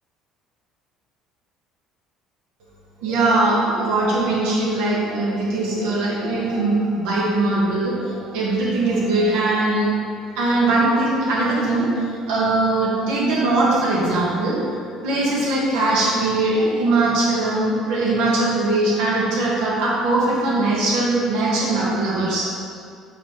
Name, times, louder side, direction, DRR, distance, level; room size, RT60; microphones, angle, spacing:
voice 1, 3.0-9.9 10.4-14.6 15.0-22.5, right 2 dB, 70° right, -5 dB, 1.6 m, -21 dB
5.7 x 5.7 x 3.3 m, 2.3 s
hypercardioid pair, 55°, 0 cm